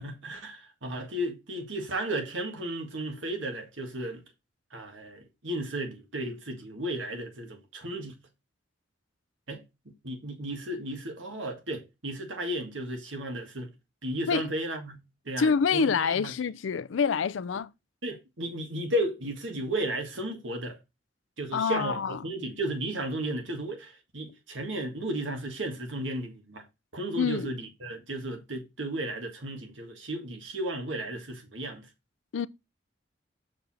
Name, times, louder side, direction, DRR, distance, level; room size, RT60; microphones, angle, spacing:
voice 1, 0.0-4.2 4.7-8.2 9.5-9.6 10.0-13.7 14.0-16.3 18.0-20.8 21.4-26.6 26.9-31.8, right 1 dB, 85° right, 1.9 m, -34 dB
voice 2, 15.4-17.7 21.5-22.2 27.2-27.5 32.3-32.5, left 6 dB, 85° left, 0.4 m, -26 dB
6.8 x 5.2 x 4.2 m
head